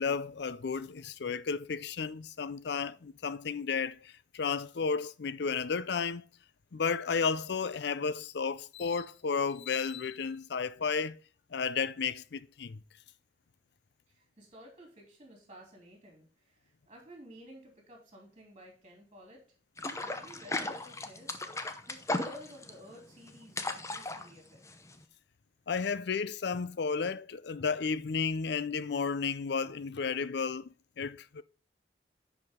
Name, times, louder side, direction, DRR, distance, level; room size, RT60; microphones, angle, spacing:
voice 1, 0.0-6.2 6.7-11.2 11.5-12.8 25.7-30.7 31.0-31.4, left 5 dB, 65° left, 0.5 m, -33 dB
voice 2, 14.1-19.6 19.9-24.6, equal, 30° right, 3.1 m, -53 dB
sound 1, 19.8-25.0, left 2 dB, 15° left, 0.8 m, -36 dB
10.5 x 5.0 x 3.6 m
head